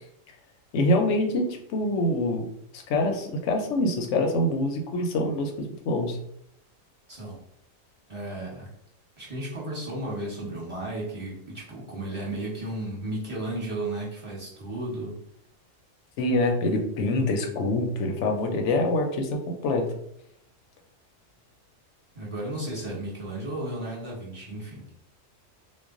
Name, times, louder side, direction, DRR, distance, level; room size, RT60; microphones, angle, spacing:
voice 1, 0.7-2.5 2.7-6.2 16.2-19.9, left 1 dB, 70° left, 3 dB, 0.8 m, -25 dB
voice 2, 8.1-8.7 9.2-15.2 22.1-24.8, right 1 dB, 25° right, -5 dB, 0.9 m, -34 dB
2.3 x 2.1 x 3.6 m, 0.72 s
omnidirectional pair, 1.4 m